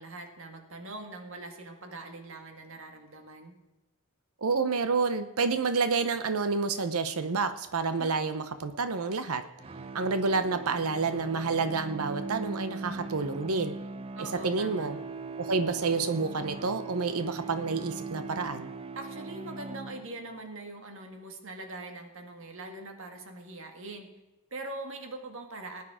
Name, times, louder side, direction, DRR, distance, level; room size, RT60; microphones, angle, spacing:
voice 1, 0.0-3.5 8.0-8.1 14.2-14.9 19.0-24.1 24.5-25.8, right 2 dB, 60° right, 5 dB, 1.9 m, -42 dB
voice 2, 4.4-9.4 9.9-13.7 14.2-15.0 15.4-18.7, right 4 dB, 75° right, 10 dB, 0.8 m, -29 dB
sound 1, 9.6-20.4, right 3 dB, 25° right, 0.5 m, -40 dB
19.0 x 9.5 x 5.0 m, 1.0 s
head